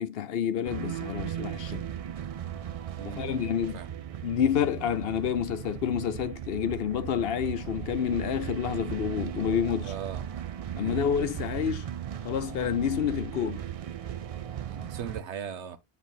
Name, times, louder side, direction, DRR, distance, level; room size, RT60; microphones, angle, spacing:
voice 1, 0.0-1.8 3.0-3.8 4.2-9.9 10.8-11.9 12.2-13.6, left 8 dB, 65° left, 0.8 m, -29 dB
Strings and Drums, 0.6-15.2, right 10 dB, 65° right, 0.3 m, -37 dB
voice 2, 3.0-3.9 9.8-10.2 10.8-11.1 14.7-15.8, right 8 dB, 85° right, 1.1 m, -39 dB
9.1 x 4.1 x 2.7 m
omnidirectional pair, 1.1 m